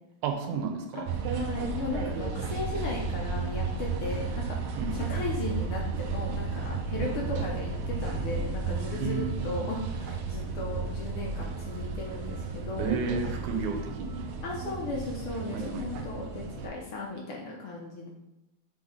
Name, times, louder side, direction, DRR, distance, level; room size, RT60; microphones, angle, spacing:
voice 1, 0.2-1.1 4.8-5.1 9.0-9.6 12.8-14.2 15.5-15.9, right 5 dB, 90° right, 5 dB, 2.3 m, -32 dB
sound 1, 1.1-16.7, right 4 dB, 70° right, 1.6 m, -33 dB
voice 2, 1.3-4.6 4.9-13.0 14.4-18.1, left 2 dB, 65° left, -1 dB, 1.5 m, -36 dB
6.4 x 4.0 x 5.1 m, 0.92 s
omnidirectional pair, 3.3 m